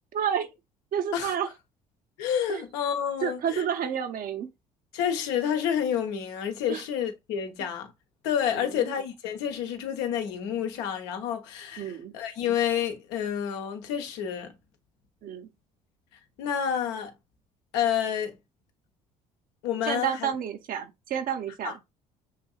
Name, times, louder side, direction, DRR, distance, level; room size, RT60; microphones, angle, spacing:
voice 1, 0.1-0.5 0.9-1.5 2.5-2.6 3.2-4.5 6.7-6.8 8.6-8.9 11.8-12.1 15.2-15.5 19.8-21.8, right 8 dB, 55° right, 0.9 m, -30 dB
voice 2, 2.2-3.6 4.9-7.9 8.2-14.5 16.4-17.1 17.7-18.3 19.6-20.3 21.6-21.7, left 9 dB, 75° left, 0.9 m, -29 dB
6.6 x 2.7 x 2.3 m
hypercardioid pair, 60°, 18 cm